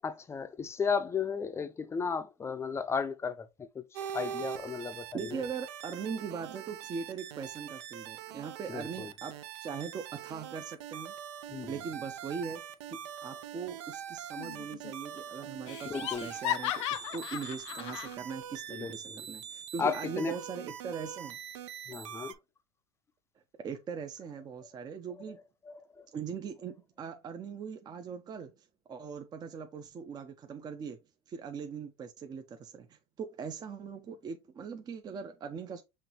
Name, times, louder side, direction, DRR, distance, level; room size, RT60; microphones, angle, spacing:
voice 1, 0.0-5.4 8.7-9.1 11.5-11.7 15.9-16.3 18.7-19.3 19.8-20.4 21.9-22.3 25.6-26.1, left 5 dB, 15° left, 0.5 m, -35 dB
sound 1, 3.9-22.3, right 9 dB, 75° right, 0.6 m, -43 dB
voice 2, 5.1-11.1 11.7-12.6 12.9-15.9 16.2-21.4 23.6-25.4 26.1-31.0 31.3-35.8, right 6 dB, 25° right, 0.6 m, -40 dB
Laughter, 14.4-14.9 15.2-15.3 15.7-18.1, left 14 dB, 80° left, 0.4 m, -36 dB
5.7 x 3.0 x 2.9 m
supercardioid pair, 110°, 15 cm